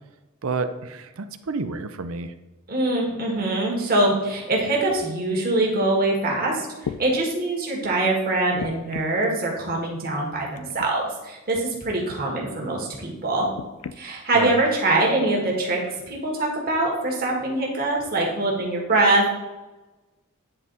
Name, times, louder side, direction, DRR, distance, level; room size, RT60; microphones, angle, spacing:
voice 1, 0.4-2.3 14.3-14.6, right 4 dB, 70° right, 10 dB, 0.6 m, -29 dB
voice 2, 2.7-13.5 14.0-15.8 16.1-19.3, right 2 dB, 45° right, -1 dB, 1.8 m, -23 dB
sound 1, 6.3-6.4 6.8-7.0 8.6-9.2 10.5-10.9 11.5-11.7 13.5-14.0 14.9-15.0, left 6 dB, 90° left, 0.4 m, -35 dB
9.9 x 3.7 x 4.1 m, 1.1 s
head